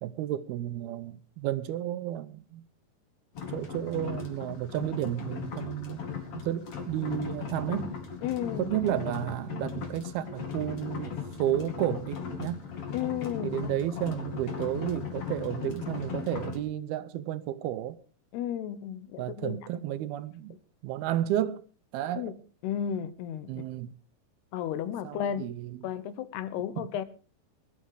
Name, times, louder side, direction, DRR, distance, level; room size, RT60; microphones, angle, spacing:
voice 1, 0.0-2.7 3.5-6.0 6.3-8.0 8.6-11.1 11.4-12.6 13.4-18.0 19.2-20.6 20.8-21.7 21.9-22.3 23.5-23.9 25.0-25.7 26.8-26.9, right 12 dB, 80° right, 2.7 m, -32 dB
sound 1, 3.3-16.6, left 6 dB, 40° left, 3.0 m, -37 dB
voice 2, 8.2-8.7 12.9-13.6 18.3-19.6 22.2-22.4 22.6-23.6 24.5-25.5 25.8-27.1, left 9 dB, 85° left, 3.1 m, -33 dB
20.0 x 11.5 x 4.8 m
omnidirectional pair, 4.6 m